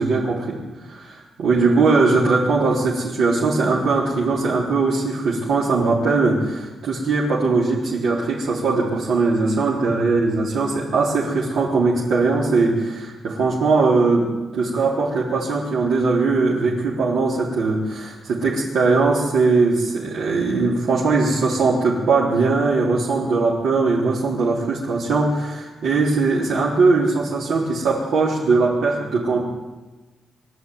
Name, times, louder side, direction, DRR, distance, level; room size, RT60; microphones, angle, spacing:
voice 1, 0.0-29.4, right 3 dB, 70° right, -6 dB, 3.9 m, -20 dB
23.0 x 13.0 x 9.6 m, 1.2 s
wide cardioid pair, 170°, 0 cm